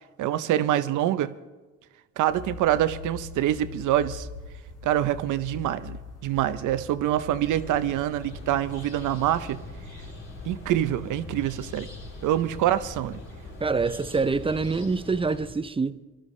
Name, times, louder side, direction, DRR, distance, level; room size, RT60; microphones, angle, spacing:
voice 1, 0.2-1.3 2.2-4.3 4.8-9.6 10.4-11.9 12.2-13.2, right 12 dB, 80° right, 0.7 m, -25 dB
sound 1, 2.3-14.7, left 3 dB, 80° left, 3.2 m, -43 dB
sound 2, 7.4-15.5, left 1 dB, 45° left, 3.5 m, -44 dB
voice 2, 13.6-16.0, right 4 dB, 20° right, 0.5 m, -26 dB
22.5 x 12.5 x 3.2 m
cardioid pair, 90°, 30 cm